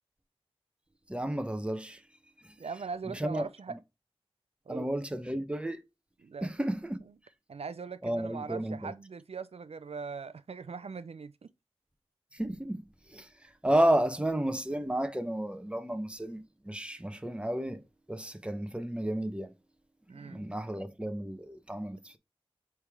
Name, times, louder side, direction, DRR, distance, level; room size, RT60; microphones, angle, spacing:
voice 1, 1.1-2.0 3.1-3.5 4.7-5.8 6.4-7.0 8.0-8.9 12.3-12.8 13.1-13.3 13.6-17.8 18.1-19.5 20.2-22.2, right 1 dB, 10° right, 0.8 m, -32 dB
voice 2, 2.6-3.8 4.7-4.9 6.2-6.5 7.0-7.1 7.5-11.5 20.1-20.4, right 5 dB, 75° right, 0.4 m, -41 dB
8.1 x 3.4 x 3.5 m
wide cardioid pair, 65°, 11 cm